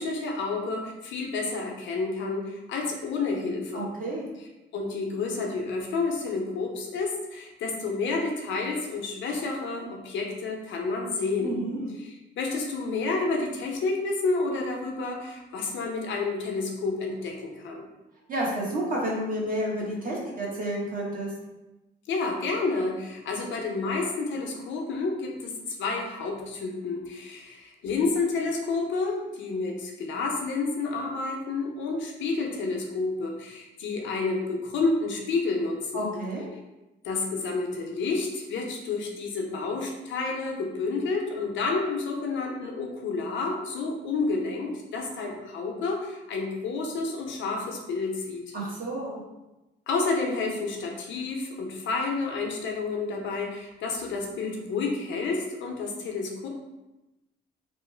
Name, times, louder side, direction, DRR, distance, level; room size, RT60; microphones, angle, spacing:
voice 1, 0.0-3.9 4.7-11.6 12.0-17.9 22.1-36.1 37.0-48.5 49.9-56.5, left 3 dB, 70° left, 1 dB, 0.6 m, -30 dB
voice 2, 3.7-4.3 11.4-11.9 18.3-21.3 35.9-36.4 48.5-49.2, right 1 dB, 45° right, -4 dB, 1.0 m, -30 dB
3.0 x 2.0 x 3.2 m, 1.0 s
cardioid pair, 90°, 20 cm